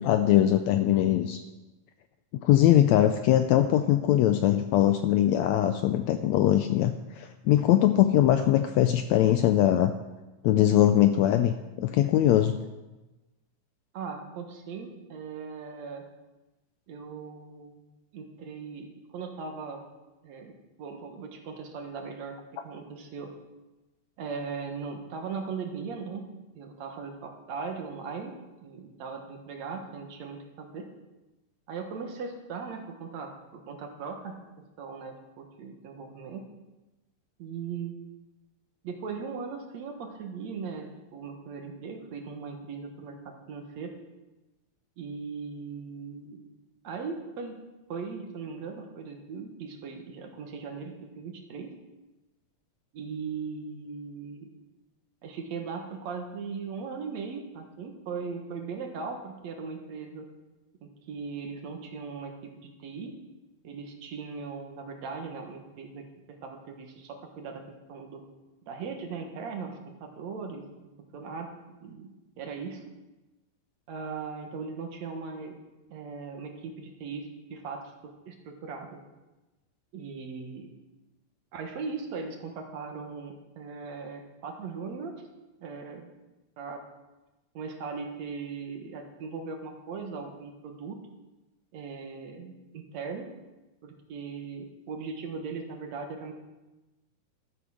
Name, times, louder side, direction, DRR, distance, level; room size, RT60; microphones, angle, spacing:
voice 1, 0.0-1.4 2.4-9.9 10.4-12.6, left 12 dB, 85° left, 8 dB, 1.5 m, -22 dB
voice 2, 13.9-16.0 16.9-17.8 18.1-19.8 20.2-23.3 24.2-26.3 26.5-28.3 28.6-30.9 31.7-34.4 34.8-36.5 37.4-37.9 38.8-40.9 41.1-43.9 45.0-46.4 46.8-47.6 47.9-51.7 52.9-54.5 55.2-60.3 60.8-63.1 63.6-66.1 66.4-67.6 67.9-68.2 68.7-70.6 71.1-71.5 71.8-72.1 72.4-72.8 73.9-75.6 75.9-77.8 78.3-78.9 79.9-80.7 81.5-85.1 85.6-86.1 86.6-86.8 87.5-91.0 91.7-93.3 93.8-96.3, right 5 dB, 60° right, 3 dB, 2.4 m, -38 dB
13.5 x 7.8 x 6.3 m, 1.1 s
omnidirectional pair, 3.7 m